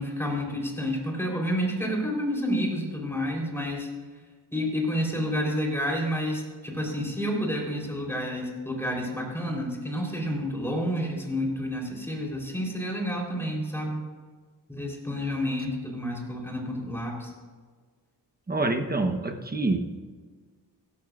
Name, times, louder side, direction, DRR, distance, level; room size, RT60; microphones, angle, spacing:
voice 1, 0.0-3.9 4.5-14.0 14.7-17.3, equal, 5° left, -2 dB, 3.7 m, -29 dB
voice 2, 18.5-20.0, right 2 dB, 20° right, 4 dB, 1.0 m, -27 dB
16.0 x 12.5 x 2.5 m, 1.5 s
cardioid pair, 80°, 41 cm